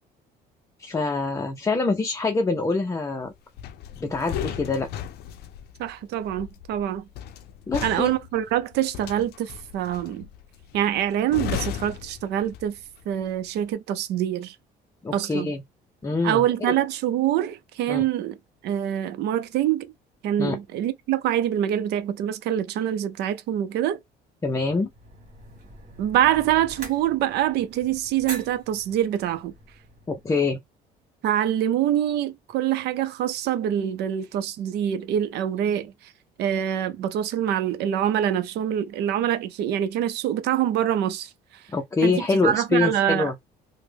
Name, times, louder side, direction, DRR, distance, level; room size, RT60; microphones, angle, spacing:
voice 1, 0.8-3.3 4.0-4.9 7.7-8.1 15.0-15.6 16.0-16.8 17.9-18.0 20.4-20.6 24.4-24.9 30.1-30.6 41.7-43.3, left 3 dB, 20° left, 0.5 m, -25 dB
closing shed door, 3.6-12.9 13.2-13.5, left 10 dB, 75° left, 0.5 m, -36 dB
voice 2, 5.8-7.0 7.8-10.3 10.7-12.8 13.1-14.6 15.1-15.5 16.2-18.4 18.6-19.9 20.2-24.0 26.0-29.5 31.2-36.1 36.4-41.6 42.0-43.3, right 11 dB, 75° right, 0.6 m, -25 dB
sound 1, 24.9-30.3, right 3 dB, 45° right, 1.6 m, -43 dB
3.1 x 2.1 x 3.3 m
cardioid pair, 110°, 17 cm